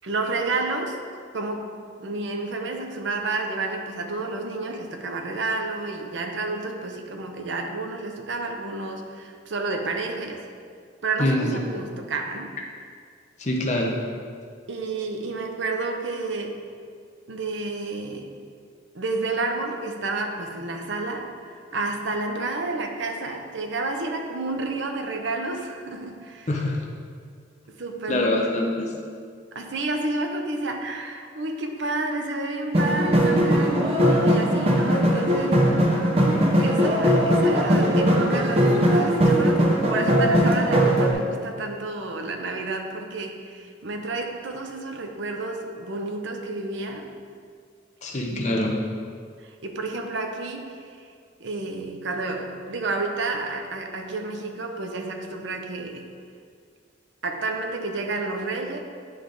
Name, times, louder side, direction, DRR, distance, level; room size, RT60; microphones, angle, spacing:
voice 1, 0.0-1.0 1.3-10.5 11.0-12.5 14.7-16.6 17.3-18.3 18.9-26.5 27.8-28.4 29.5-35.7 36.6-47.1 48.2-48.7 49.4-51.1 51.4-56.1 57.2-58.8, right 3 dB, 70° right, 3 dB, 0.7 m, -30 dB
voice 2, 11.2-11.6 13.4-14.0 26.5-26.8 28.1-28.9 48.0-48.8, left 1 dB, 35° left, 0 dB, 0.7 m, -24 dB
sound 1, 32.7-41.1, equal, 30° right, 0.8 m, -20 dB
10.0 x 3.4 x 3.8 m, 2.1 s
head